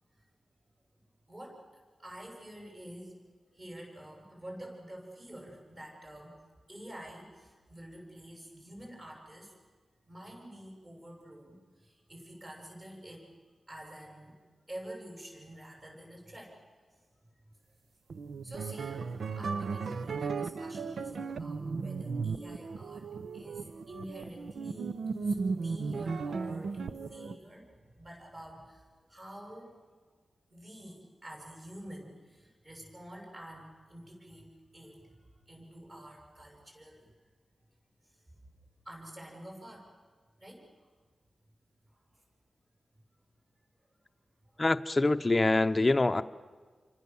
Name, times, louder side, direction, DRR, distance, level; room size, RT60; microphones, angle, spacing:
voice 1, 1.3-1.6 2.0-3.1 3.5-6.4 6.7-9.6 10.1-13.3 13.7-14.4 14.7-16.6 17.2-17.5 18.4-23.1 23.3-29.8 30.5-37.1 38.0-38.2 38.9-39.9 40.4-40.7 41.9-42.2 44.5-44.7, right 1 dB, 30° right, 7.0 m, -48 dB
sound 1, 18.1-27.4, right 4 dB, 85° right, 0.8 m, -36 dB
voice 2, 44.6-46.2, left 2 dB, 25° left, 0.7 m, -25 dB
28.5 x 24.5 x 7.1 m
wide cardioid pair, 150°, 0 cm